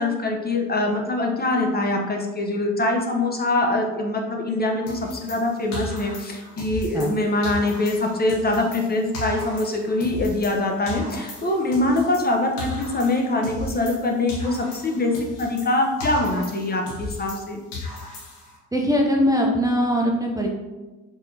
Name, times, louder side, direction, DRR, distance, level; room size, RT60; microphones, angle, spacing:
voice 1, 0.0-15.1 15.4-17.6, left 2 dB, 25° left, 1 dB, 0.9 m, -23 dB
sound 1, 4.9-7.2 7.4-10.6 10.9-14.0 14.3-17.4 17.7-18.6, left 3 dB, 90° left, 0.9 m, -36 dB
voice 2, 18.7-20.5, equal, 10° right, -1 dB, 0.7 m, -21 dB
5.1 x 3.6 x 2.8 m, 1.2 s
hypercardioid pair, 50°, 37 cm